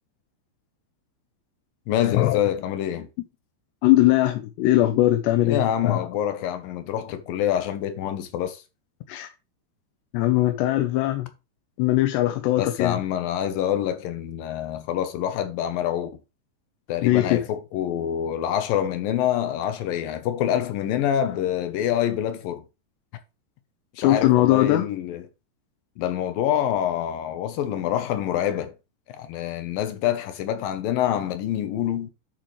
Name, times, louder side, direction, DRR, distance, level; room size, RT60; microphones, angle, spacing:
voice 1, 1.9-3.1 5.4-8.6 12.6-16.2 16.9-22.6 23.9-25.3 26.0-28.7 29.1-32.1, left 10 dB, 70° left, 2.4 m, -26 dB
voice 2, 3.8-6.1 9.1-9.3 10.1-11.3 11.8-13.0 17.0-17.4 24.0-24.8, left 15 dB, 90° left, 3.0 m, -20 dB
11.0 x 6.1 x 3.2 m
omnidirectional pair, 4.8 m